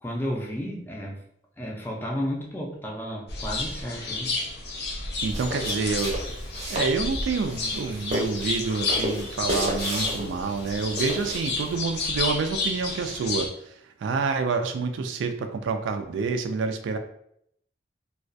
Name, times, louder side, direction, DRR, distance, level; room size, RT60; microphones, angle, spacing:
voice 1, 0.0-1.2 1.6-4.3, equal, 10° left, -2 dB, 0.4 m, -32 dB
sound 1, 3.3-13.5, left 3 dB, 60° left, 0.6 m, -31 dB
sound 2, 5.1-11.8, equal, 35° right, 0.6 m, -33 dB
voice 2, 5.2-6.3 6.7-13.5 14.0-17.0, right 4 dB, 85° right, 7 dB, 0.3 m, -28 dB
2.3 x 2.1 x 2.6 m, 0.70 s
head